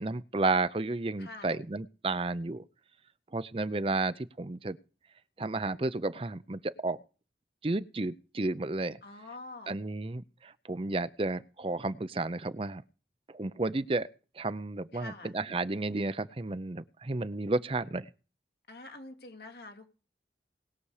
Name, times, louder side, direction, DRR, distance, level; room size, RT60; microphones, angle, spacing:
voice 1, 0.0-2.6 3.3-4.8 5.4-7.0 7.6-9.0 9.7-12.8 13.3-14.1 14.4-18.1, right 2 dB, 30° right, 0.6 m, -32 dB
voice 2, 1.2-1.6 9.0-9.7 14.9-15.4 18.7-19.9, left 2 dB, 70° left, 2.9 m, -46 dB
20.0 x 6.9 x 4.9 m
head